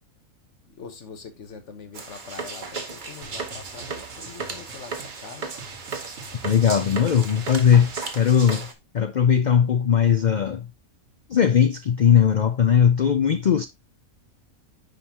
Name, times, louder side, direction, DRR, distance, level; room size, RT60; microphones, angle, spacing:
voice 1, 0.7-5.6, left 5 dB, 55° left, 1.4 m, -43 dB
sound 1, 1.9-8.7, right 4 dB, 40° right, 1.1 m, -35 dB
Drum, 3.2-8.0, right 4 dB, 55° right, 1.3 m, -43 dB
voice 2, 6.4-8.7 8.9-10.7 11.3-13.7, left 8 dB, 85° left, 0.4 m, -19 dB
9.7 x 3.9 x 2.8 m
omnidirectional pair, 1.5 m